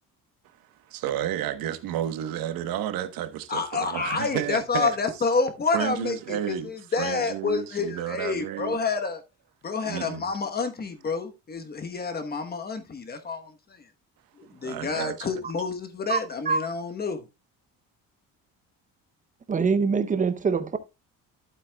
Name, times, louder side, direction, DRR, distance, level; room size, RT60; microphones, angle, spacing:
voice 1, 0.6-5.0 5.7-6.7 7.0-8.8 9.8-10.2 14.6-15.3, right 11 dB, 85° right, 1.2 m, -31 dB
voice 2, 3.5-9.2 9.6-13.9 14.4-17.2, left 4 dB, 30° left, 1.1 m, -29 dB
voice 3, 19.5-20.8, right 5 dB, 25° right, 0.7 m, -23 dB
11.5 x 8.1 x 2.3 m
cardioid pair, 145°, 34 cm